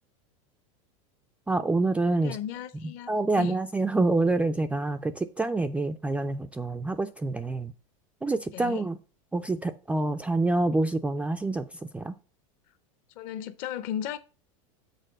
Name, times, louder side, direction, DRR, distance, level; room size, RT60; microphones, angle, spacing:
voice 1, 1.5-2.4 3.1-7.7 8.2-9.0 9.3-11.7 11.9-12.1, right 2 dB, 5° right, 0.3 m, -27 dB
voice 2, 2.2-3.5 8.5-8.8 13.1-14.2, left 10 dB, 50° left, 0.8 m, -35 dB
6.7 x 4.6 x 6.3 m
supercardioid pair, 140°, 18 cm